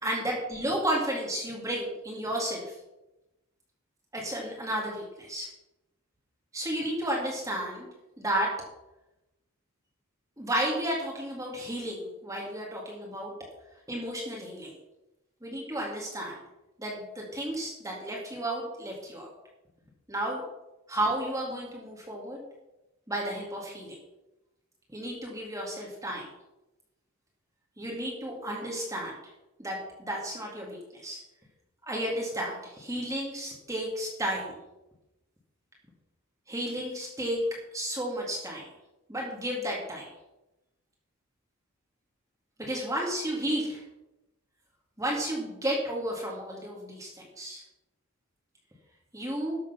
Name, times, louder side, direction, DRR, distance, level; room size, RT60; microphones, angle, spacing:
voice 1, 0.0-2.8 4.1-5.5 6.5-7.9 8.2-8.5 10.4-13.3 13.9-14.7 15.4-16.4 16.8-19.3 20.1-20.4 20.9-22.4 23.1-23.9 24.9-26.3 27.8-29.2 29.6-31.2 31.9-34.5 36.5-37.4 37.7-38.7 39.1-40.1 42.6-43.8 45.0-47.6 49.1-49.5, right 1 dB, 15° right, -2 dB, 2.2 m, -32 dB
12.5 x 7.1 x 5.7 m, 0.97 s
head